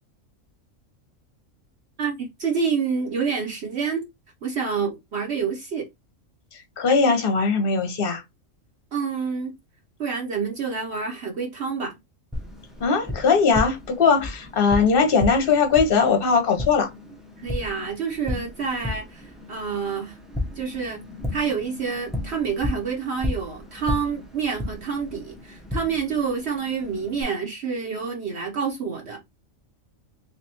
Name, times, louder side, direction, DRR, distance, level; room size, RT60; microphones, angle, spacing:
voice 1, 2.0-4.0 4.4-5.9 8.9-9.5 10.0-12.0 17.4-20.2 20.6-21.1 21.3-29.2, right 5 dB, 55° right, 1.1 m, -28 dB
voice 2, 6.8-8.2 12.8-16.9, left 5 dB, 50° left, 1.0 m, -20 dB
Tap, 12.3-27.2, left 2 dB, ahead, 0.6 m, -34 dB
3.4 x 3.2 x 2.9 m
omnidirectional pair, 1.4 m